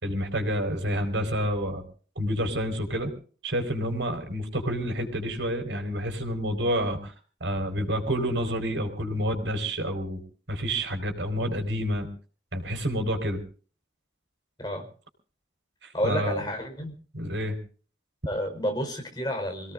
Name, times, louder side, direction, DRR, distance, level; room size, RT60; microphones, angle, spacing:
voice 1, 0.0-1.8 2.1-3.1 3.4-7.1 7.4-10.2 10.5-12.1 12.5-13.4 15.8-16.4 17.1-17.6, equal, 85° right, 6 dB, 4.6 m, -28 dB
voice 2, 15.9-16.9 18.3-19.7, equal, 25° left, 3 dB, 4.5 m, -30 dB
28.0 x 17.5 x 2.6 m, 0.41 s
head